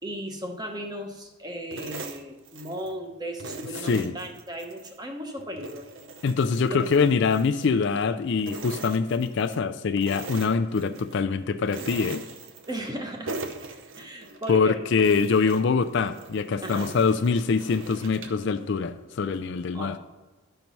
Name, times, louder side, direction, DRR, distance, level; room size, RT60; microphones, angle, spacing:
voice 1, 0.0-5.9 6.7-6.9 12.7-13.3 14.0-14.8 16.6-16.9 19.7-20.0, equal, 20° right, 3 dB, 0.9 m, -36 dB
sound 1, 1.7-3.0 3.4-5.0 5.4-8.1 8.4-9.6 10.0-11.2 11.7-13.0 13.3-14.6 15.0-18.5, right 3 dB, 60° right, 0.8 m, -40 dB
voice 2, 3.8-4.1 6.2-12.2 14.5-20.0, left 5 dB, 55° left, 10 dB, 0.4 m, -24 dB
12.0 x 4.5 x 5.4 m, 1.1 s
head